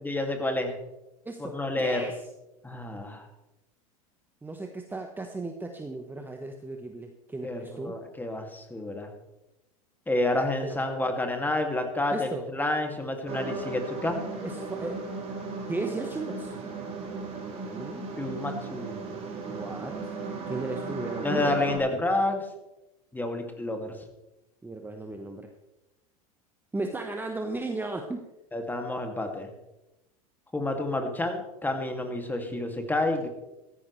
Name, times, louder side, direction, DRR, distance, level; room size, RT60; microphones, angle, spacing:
voice 1, 0.0-0.7 1.4-2.1 2.6-3.3 7.4-9.1 10.1-14.2 18.2-19.1 21.2-22.4 23.1-24.0 28.5-29.5 30.5-33.3, left 2 dB, 10° left, 4 dB, 2.5 m, -29 dB
voice 2, 1.2-2.2 4.4-8.0 10.6-11.0 12.1-12.4 14.4-15.0 15.7-16.6 17.4-18.1 19.5-20.1 20.5-21.6 24.6-25.5 26.7-28.2, right 2 dB, 10° right, 4 dB, 1.3 m, -36 dB
sound 1, 13.3-21.8, right 4 dB, 35° right, 4.2 m, -36 dB
16.0 x 14.0 x 3.3 m, 0.97 s
hypercardioid pair, 90°, 18 cm